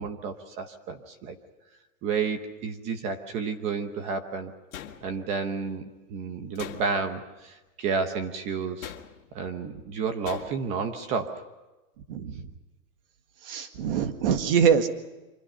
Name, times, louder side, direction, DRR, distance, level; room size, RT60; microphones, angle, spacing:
voice 1, 0.0-1.4 2.0-4.5 5.0-8.9 9.3-11.4, right 5 dB, 15° right, 8 dB, 0.8 m, -31 dB
sound 1, 4.7-5.4 6.6-7.2 8.8-9.4 10.3-10.8, left 10 dB, 70° left, 2.2 m, -42 dB
voice 2, 12.1-12.5 13.4-14.9, right 7 dB, 40° right, 8 dB, 1.9 m, -24 dB
27.0 x 25.5 x 5.7 m, 1.1 s
supercardioid pair, 170°, 42 cm